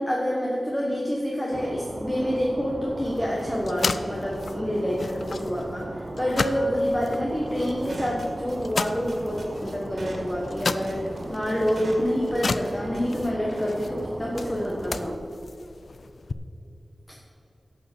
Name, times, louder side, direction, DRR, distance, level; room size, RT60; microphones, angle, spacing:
voice 1, 0.0-11.0 11.3-15.2, equal, 15° left, -2 dB, 1.4 m, -27 dB
sound 1, 1.5-15.2, right 2 dB, 35° right, 0.7 m, -37 dB
sound 2, 3.0-16.3, left 4 dB, 60° left, 0.4 m, -35 dB
sound 3, 7.6-13.0, right 1 dB, 50° right, 2.2 m, -41 dB
11.5 x 6.8 x 7.0 m, 2.7 s
wide cardioid pair, 110°, 0 cm